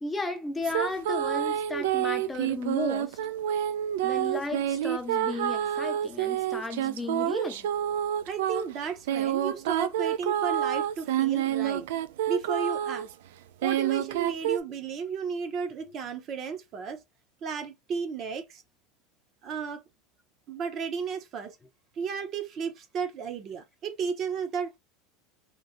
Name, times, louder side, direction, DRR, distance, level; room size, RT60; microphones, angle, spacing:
voice 1, 0.0-3.2 4.0-7.7 15.8-15.9, left 3 dB, 10° left, 0.4 m, -34 dB
sound 1, 0.6-13.1 13.6-14.6, right 11 dB, 85° right, 0.3 m, -28 dB
voice 2, 8.2-11.9 12.3-13.1 13.6-17.0 17.4-18.6 19.4-19.8 20.5-21.6 22.0-24.7, right 6 dB, 35° right, 0.6 m, -34 dB
3.0 x 2.6 x 2.5 m
supercardioid pair, 155°, 0 cm